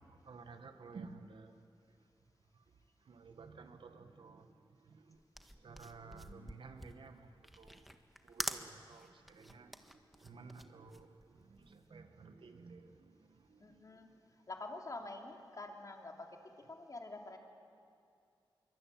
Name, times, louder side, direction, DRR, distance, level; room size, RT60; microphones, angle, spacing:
voice 1, 0.0-1.6 1.9-2.0 2.5-2.6 3.0-14.2, right 4 dB, 70° right, 1.7 m, -55 dB
sound 1, 5.1-11.8, equal, ahead, 1.5 m, -46 dB
voice 2, 13.6-14.1 14.5-17.4, left 2 dB, 40° left, 3.2 m, -47 dB
23.5 x 23.5 x 9.2 m
cardioid pair, 70°, 9 cm